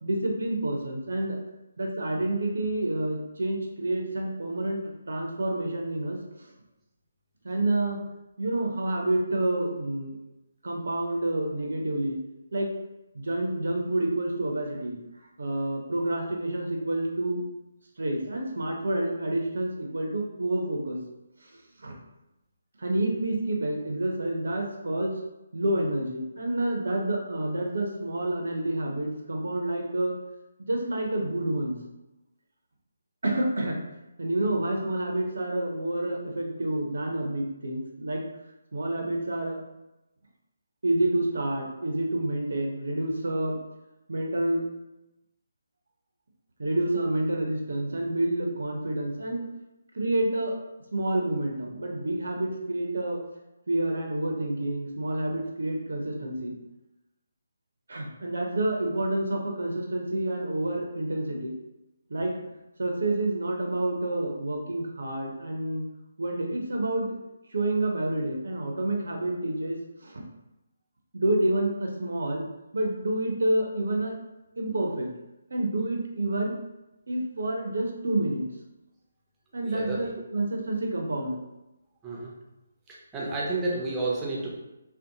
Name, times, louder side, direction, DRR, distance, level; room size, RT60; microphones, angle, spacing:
voice 1, 0.0-1.4 1.8-6.5 7.4-8.0 8.4-10.1 10.6-12.2 12.5-12.7 13.1-17.4 18.0-21.0 21.4-21.5 21.8-21.9 22.8-25.1 25.5-30.2 30.6-31.8 33.2-33.8 34.2-38.2 38.7-39.6 40.8-43.6 44.1-44.7 46.6-49.5 49.9-50.5 50.9-53.2 53.7-56.6 57.9-61.5 62.1-62.3 62.8-65.9 66.2-67.1 67.5-70.2 71.1-72.4 72.7-74.2 74.6-75.1 75.5-76.6 77.1-78.5 79.5-81.4, right 1 dB, 60° right, 1 dB, 0.4 m, -28 dB
voice 2, 79.6-80.0 82.0-82.3 83.1-84.5, right 2 dB, 15° right, -5 dB, 0.5 m, -30 dB
2.6 x 2.0 x 2.7 m, 0.97 s
figure-of-eight pair, 145°, 0 cm